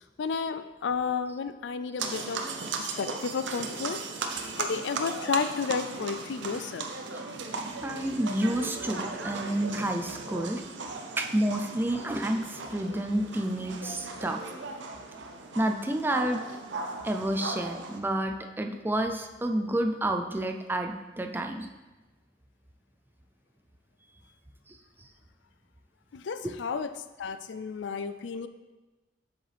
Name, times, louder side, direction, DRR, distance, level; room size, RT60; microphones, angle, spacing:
voice 1, 0.2-2.4 2.8-4.0 4.3-6.9 26.1-26.9 27.2-28.5, left 5 dB, 80° left, 11 dB, 0.4 m, -32 dB
sound 1, 2.0-18.0, right 4 dB, 85° right, 0.7 m, -37 dB
voice 2, 7.8-10.6 11.2-14.4 15.5-16.4 17.0-21.7 24.7-24.8 26.4-26.6, right 1 dB, 10° right, 4 dB, 0.4 m, -29 dB
7.9 x 6.3 x 3.4 m, 1.2 s
head